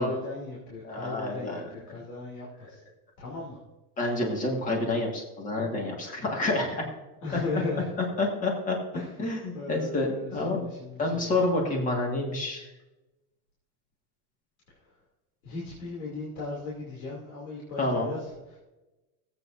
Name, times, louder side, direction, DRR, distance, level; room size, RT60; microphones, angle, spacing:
voice 1, 0.0-2.8 3.2-3.6 7.2-7.9 8.9-9.2 9.5-11.4 14.7-14.8 15.4-18.6, left 3 dB, 80° left, -5 dB, 2.9 m, -37 dB
voice 2, 0.8-1.7 4.0-6.8 7.3-7.6 8.0-8.8 9.2-10.6 11.0-12.7 17.8-18.1, left 2 dB, 20° left, 1 dB, 1.7 m, -28 dB
17.0 x 8.2 x 2.6 m, 1.0 s
supercardioid pair, 175°, 44 cm